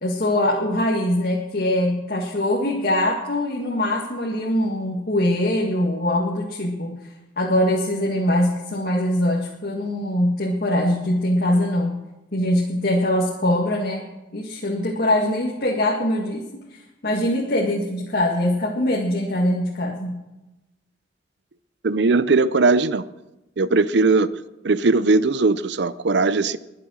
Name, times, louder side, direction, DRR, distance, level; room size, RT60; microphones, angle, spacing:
voice 1, 0.0-7.0 7.4-12.0 12.3-14.0 14.3-16.4 17.0-20.2, left 1 dB, 55° left, 1.9 m, -22 dB
voice 2, 21.8-23.0 23.6-24.3 24.6-26.6, right 3 dB, 65° right, 0.6 m, -19 dB
22.0 x 7.6 x 6.3 m
head